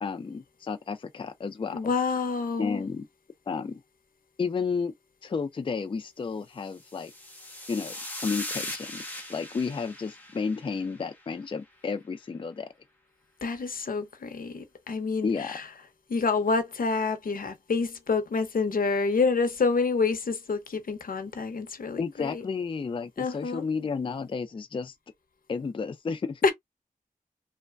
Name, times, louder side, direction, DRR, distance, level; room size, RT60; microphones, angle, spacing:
voice 1, 0.0-1.9 2.6-3.1 3.5-3.8 4.4-4.9 5.2-7.1 7.7-9.0 9.3-12.7 15.2-15.6 22.0-24.9 25.5-26.4, left 5 dB, 35° left, 0.3 m, -32 dB
voice 2, 1.7-2.8 13.4-15.6 16.1-22.4 23.2-23.6 26.4-26.5, left 4 dB, 80° left, 0.7 m, -27 dB
sound 1, 6.7-11.2, left 1 dB, 10° left, 0.9 m, -39 dB
3.1 x 2.1 x 2.3 m
wide cardioid pair, 70°, 14 cm